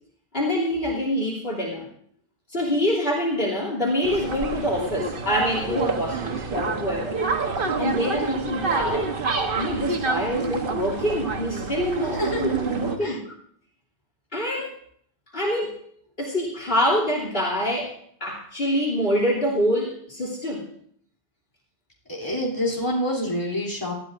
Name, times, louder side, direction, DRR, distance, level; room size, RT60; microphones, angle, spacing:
voice 1, 0.3-1.9 2.5-7.2 7.8-9.1 9.5-13.2 14.3-14.7 15.3-15.8 16.2-20.7, equal, 70° left, -1 dB, 3.2 m, -25 dB
sound 1, 4.0-13.0, right 4 dB, 60° right, 1.3 m, -28 dB
voice 2, 12.1-12.6 13.0-13.2 22.0-23.9, equal, 25° left, -2 dB, 3.3 m, -27 dB
19.0 x 14.0 x 2.6 m, 0.63 s
omnidirectional pair, 1.0 m